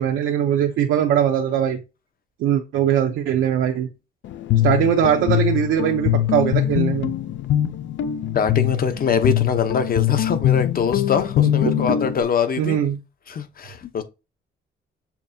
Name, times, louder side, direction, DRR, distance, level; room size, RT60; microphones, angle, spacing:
voice 1, 0.0-1.8 2.4-3.9 4.6-7.1 11.6-11.7 12.6-13.0, right 9 dB, 80° right, 0.7 m, -20 dB
Guitar, 4.2-12.2, left 12 dB, 70° left, 0.5 m, -22 dB
voice 2, 8.3-12.8 13.3-14.0, left 6 dB, 45° left, 0.9 m, -23 dB
7.0 x 2.8 x 2.7 m
cardioid pair, 90°, 20 cm